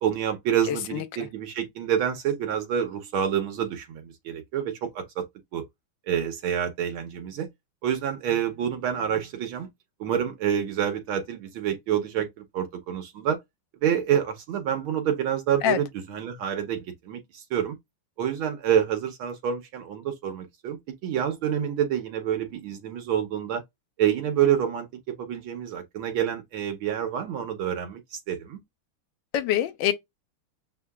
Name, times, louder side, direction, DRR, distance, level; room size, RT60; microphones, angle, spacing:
voice 1, 0.0-5.2 5.5-5.6 6.1-7.5 7.8-9.7 10.0-13.4 13.8-17.8 18.2-23.6 24.0-28.6, right 9 dB, 75° right, 1.7 m, -27 dB
voice 2, 0.7-1.3 15.6-15.8 29.3-29.9, left 11 dB, 70° left, 1.3 m, -25 dB
7.0 x 2.7 x 2.3 m
omnidirectional pair, 2.3 m